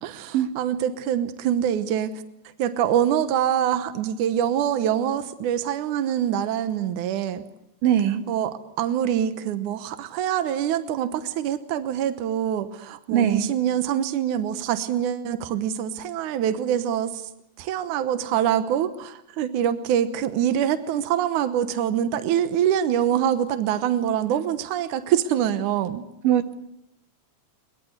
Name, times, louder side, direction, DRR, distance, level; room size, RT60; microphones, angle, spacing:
voice 1, 0.0-2.2 2.6-7.4 8.3-17.3 17.6-26.1, right 10 dB, 75° right, 10 dB, 2.5 m, -25 dB
voice 2, 7.8-8.2 13.1-13.5 26.2-26.5, right 10 dB, 90° right, 7 dB, 3.1 m, -21 dB
22.5 x 22.0 x 8.0 m, 0.82 s
omnidirectional pair, 3.7 m